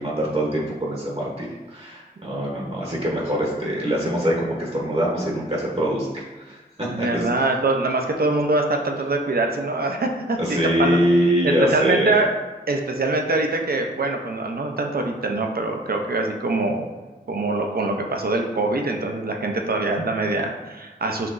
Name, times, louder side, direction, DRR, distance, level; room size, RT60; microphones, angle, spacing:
voice 1, 0.0-7.2 10.4-12.2, equal, 40° right, -4 dB, 0.9 m, -24 dB
voice 2, 6.9-11.0 11.4-12.3 12.7-16.8 17.3-21.3, right 2 dB, 70° right, 3 dB, 0.5 m, -24 dB
5.6 x 3.0 x 2.5 m, 1.2 s
wide cardioid pair, 65°, 16 cm